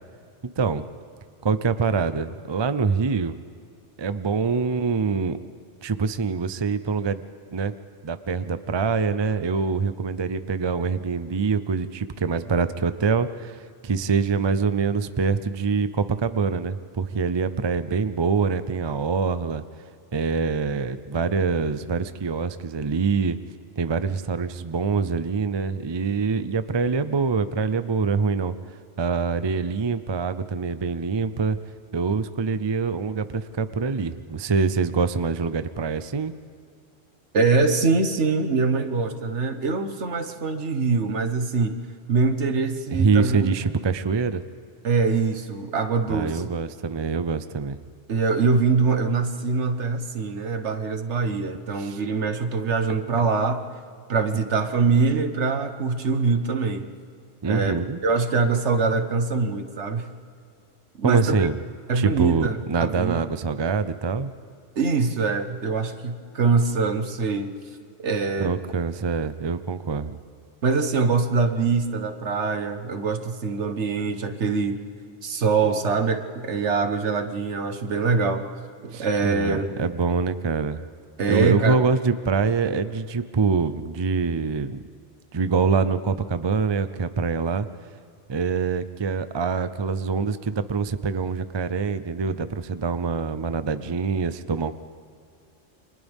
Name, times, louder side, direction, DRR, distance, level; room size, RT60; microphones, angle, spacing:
voice 1, 1.4-3.4 4.0-5.4 5.8-7.2 7.5-7.7 8.0-19.6 20.1-23.4 23.8-28.6 29.0-31.6 31.9-36.3 42.9-44.4 46.1-47.8 51.8-52.0 53.1-53.2 57.4-58.0 61.0-61.6 61.9-64.3 68.4-70.2 78.9-80.8 81.3-84.8 85.3-87.7 88.3-94.8, right 5 dB, 35° right, 12 dB, 0.5 m, -25 dB
voice 2, 37.3-41.8 42.1-43.5 44.8-46.5 48.1-53.6 54.1-56.9 57.4-60.1 61.0-61.5 61.9-63.2 64.8-67.5 68.0-68.6 70.6-74.8 75.2-78.5 78.8-79.8 81.2-81.8, right 4 dB, 70° right, 7 dB, 1.5 m, -23 dB
30.0 x 25.5 x 3.6 m, 2.3 s
omnidirectional pair, 1.2 m